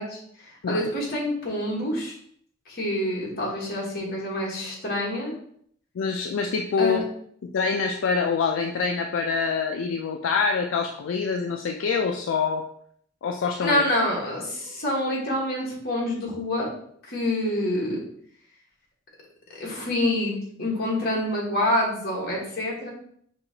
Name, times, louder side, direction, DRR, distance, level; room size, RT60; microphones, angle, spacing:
voice 1, 0.0-2.1 2.7-5.3 6.8-7.0 13.6-16.7 17.1-18.0 19.6-22.9, left 1 dB, 50° left, -3 dB, 1.3 m, -27 dB
voice 2, 6.0-7.0 7.4-12.7 13.2-13.8, left 5 dB, 75° left, 3 dB, 0.4 m, -25 dB
5.4 x 2.8 x 2.8 m, 0.64 s
head